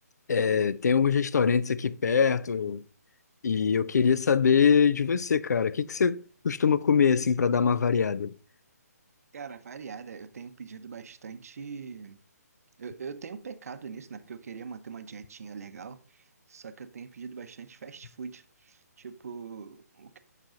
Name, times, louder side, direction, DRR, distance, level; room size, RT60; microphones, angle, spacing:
voice 1, 0.3-2.8 3.4-8.3, left 6 dB, 80° left, 0.4 m, -23 dB
voice 2, 9.3-12.2 12.8-20.2, right 5 dB, 60° right, 0.7 m, -42 dB
8.9 x 5.9 x 2.5 m
hypercardioid pair, 160°, 9 cm